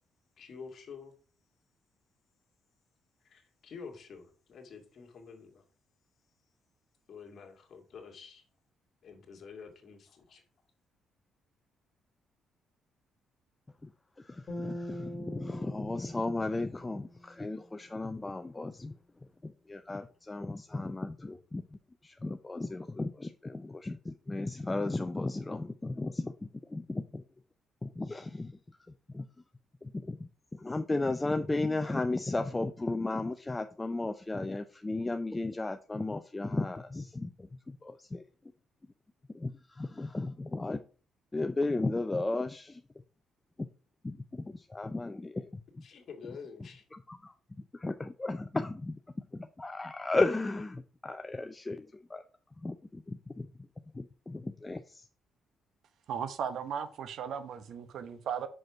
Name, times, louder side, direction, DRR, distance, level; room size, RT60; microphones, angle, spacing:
voice 1, 0.4-1.1 3.2-5.6 7.1-8.4 9.0-10.4 45.8-46.8, left 5 dB, 55° left, 2.0 m, -48 dB
voice 2, 14.2-19.0 19.4-27.2 27.8-28.6 29.1-29.3 29.8-38.2 39.3-40.8 41.3-42.8 43.6-43.7 44.0-45.6 46.9-47.3 47.7-49.0 49.3-52.2 52.6-53.5 53.9-55.1, left 2 dB, 20° left, 0.5 m, -35 dB
sound 1, 14.5-17.8, left 1 dB, 35° left, 2.3 m, -43 dB
voice 3, 56.1-58.5, right 7 dB, 70° right, 0.9 m, -36 dB
6.0 x 5.3 x 4.8 m
cardioid pair, 90°, 0 cm